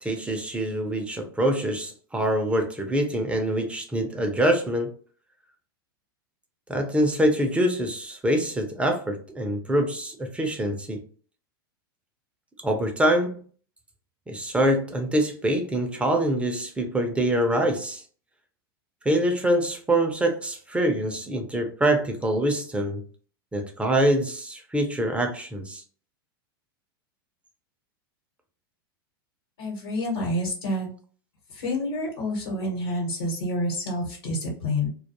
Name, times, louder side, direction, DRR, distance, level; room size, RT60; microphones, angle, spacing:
voice 1, 0.0-4.9 6.7-11.0 12.6-13.4 14.3-18.0 19.1-23.0 23.5-25.8, right 1 dB, 10° right, 0.4 m, -25 dB
voice 2, 29.6-30.9 31.5-34.9, left 1 dB, 80° left, 1.0 m, -28 dB
2.2 x 2.2 x 2.8 m
hypercardioid pair, 110°, 12 cm